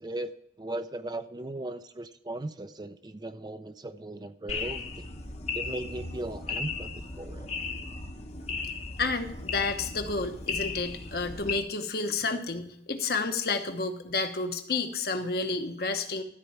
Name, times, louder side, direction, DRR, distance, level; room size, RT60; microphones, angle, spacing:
voice 1, 0.0-5.1 5.5-7.5, right 2 dB, 25° right, 10 dB, 0.4 m, -38 dB
sound 1, 4.5-11.6, left 4 dB, 35° left, 0.9 m, -36 dB
voice 2, 9.0-16.2, left 3 dB, 55° left, 6 dB, 1.0 m, -30 dB
13.0 x 4.5 x 6.6 m, 0.69 s
head